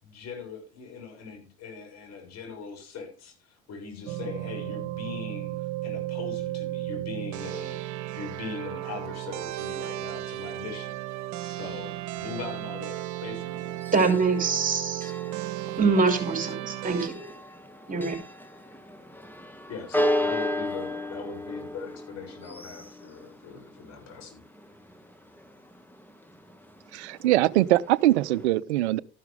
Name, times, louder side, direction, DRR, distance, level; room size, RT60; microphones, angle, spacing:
voice 1, 0.0-7.8 8.1-11.0 11.5-13.7 19.7-24.4, left 5 dB, 50° left, 7.1 m, -40 dB
sound 1, 4.1-17.1, right 15 dB, 60° right, 1.3 m, -34 dB
Church bell, 13.4-28.5, left 1 dB, 5° left, 2.0 m, -35 dB
voice 2, 13.9-15.1 15.8-17.3 17.9-18.2, right 4 dB, 25° right, 5.3 m, -24 dB
voice 3, 26.9-29.0, right 15 dB, 80° right, 0.6 m, -22 dB
13.5 x 11.5 x 3.6 m
hypercardioid pair, 65°, 33 cm